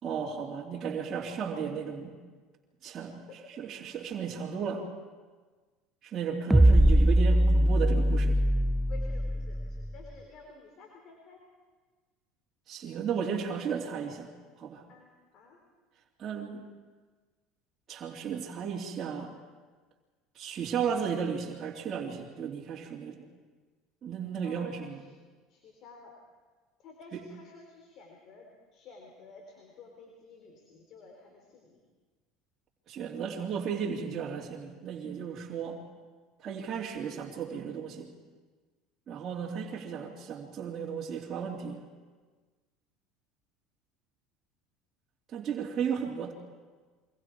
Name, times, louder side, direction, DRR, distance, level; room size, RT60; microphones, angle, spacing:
voice 1, 0.0-2.1 2.8-3.3 3.6-4.8 6.0-8.4 12.7-14.3 14.6-14.8 16.2-16.6 17.9-19.4 20.3-23.2 24.0-25.0 27.1-27.2 32.9-35.8 36.4-38.1 39.1-41.8 45.3-46.3, right 7 dB, 40° right, -5 dB, 3.1 m, -34 dB
sound 1, 6.5-9.9, right 1 dB, 5° right, 0.6 m, -22 dB
voice 2, 8.9-11.4 14.9-15.6 24.4-25.1 25.5-26.1 26.8-31.8 45.9-46.0, left 4 dB, 55° left, 2 dB, 3.9 m, -52 dB
28.0 x 24.0 x 4.8 m, 1.4 s
supercardioid pair, 90°, 0 cm